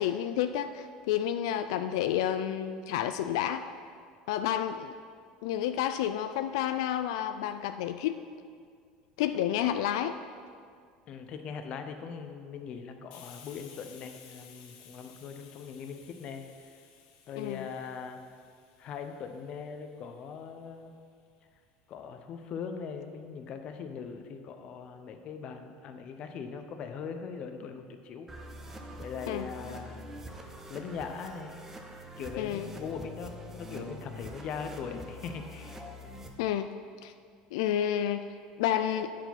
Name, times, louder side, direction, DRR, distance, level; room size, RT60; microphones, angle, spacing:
voice 1, 0.0-3.6 4.3-4.9 5.4-8.2 9.2-10.2 17.4-17.8 29.3-29.8 32.4-32.7 36.4-36.7 37.0-37.1 37.5-38.3 38.6-39.1, left 10 dB, 90° left, 9 dB, 0.3 m, -30 dB
voice 2, 11.1-16.4 17.3-18.2 18.8-20.9 21.9-28.3 29.0-30.1 30.7-31.6 32.2-35.8, left 6 dB, 40° left, 6 dB, 0.7 m, -40 dB
Hiss, 13.1-20.5, left 7 dB, 60° left, 0.9 m, -56 dB
sound 1, 28.3-36.3, equal, 15° right, 0.7 m, -45 dB
8.8 x 4.7 x 5.9 m, 2.1 s
cardioid pair, 155°, 3 cm